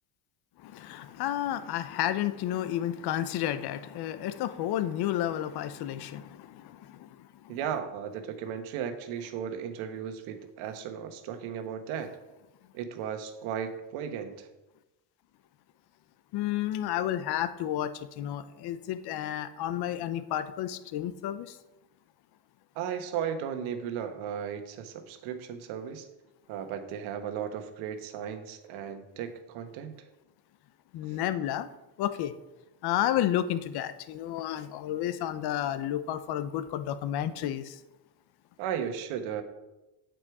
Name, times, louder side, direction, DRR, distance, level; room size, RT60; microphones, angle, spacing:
voice 1, 0.6-6.6 16.3-21.5 30.9-31.7 32.0-32.3 32.8-37.7, left 12 dB, 55° left, 0.8 m, -31 dB
voice 2, 7.5-12.2 12.7-14.5 22.7-26.1 26.5-29.9 38.6-39.4, right 8 dB, 80° right, 1.4 m, -35 dB
8.8 x 8.0 x 4.8 m
cardioid pair, 150°, 47 cm